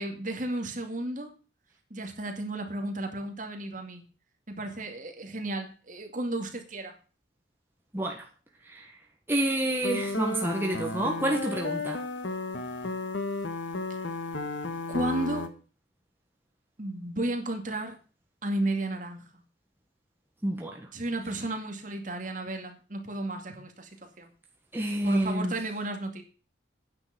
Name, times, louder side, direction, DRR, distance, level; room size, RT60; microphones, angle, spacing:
voice 1, 0.0-1.3 1.9-4.0 4.5-6.9 13.9-14.0 14.9-15.5 16.8-18.0 18.4-19.4 20.9-24.3 25.0-26.2, right 2 dB, 45° right, 4 dB, 2.3 m, -33 dB
voice 2, 7.9-8.2 8.7-8.9 9.3-12.0 20.4-20.9 24.7-25.5, right 1 dB, 10° right, 0 dB, 1.5 m, -29 dB
sound 1, 9.8-15.5, left 2 dB, 80° left, 1.6 m, -33 dB
9.9 x 6.8 x 8.2 m, 0.36 s
head